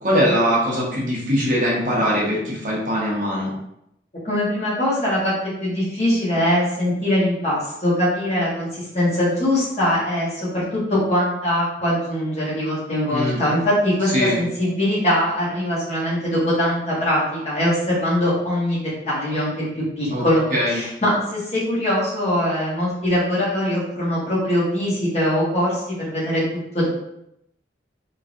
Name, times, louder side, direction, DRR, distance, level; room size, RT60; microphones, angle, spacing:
voice 1, 0.0-3.5 13.1-13.4 14.1-14.4 20.1-20.2 20.5-20.8, equal, 45° right, -5 dB, 0.9 m, -21 dB
voice 2, 4.2-5.3 5.6-26.4 26.7-26.9, left 1 dB, 35° left, -7 dB, 1.1 m, -22 dB
3.1 x 2.6 x 2.5 m, 0.80 s
head